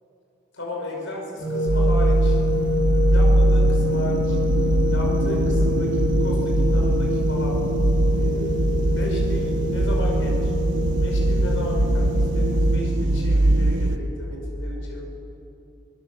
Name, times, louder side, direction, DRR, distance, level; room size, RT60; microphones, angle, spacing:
voice 1, 0.5-2.4 3.1-4.4 4.9-7.6 8.1-8.5 8.9-10.5 11.0-15.0, left 1 dB, 80° left, -1 dB, 5.2 m, -34 dB
sound 1, 1.4-12.8, left 1 dB, 40° left, 3.4 m, -26 dB
sound 2, 1.7-14.0, right 1 dB, 75° right, 1.0 m, -21 dB
24.5 x 17.5 x 7.3 m, 2.8 s
head